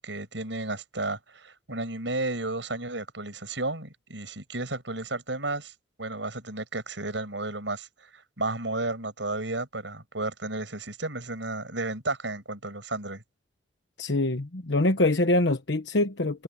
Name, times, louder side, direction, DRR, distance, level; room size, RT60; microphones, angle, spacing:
voice 1, 0.0-5.7 6.0-13.2, right 2 dB, 80° right, 7.0 m, -33 dB
voice 2, 14.0-16.4, left 2 dB, 75° left, 1.2 m, -24 dB
head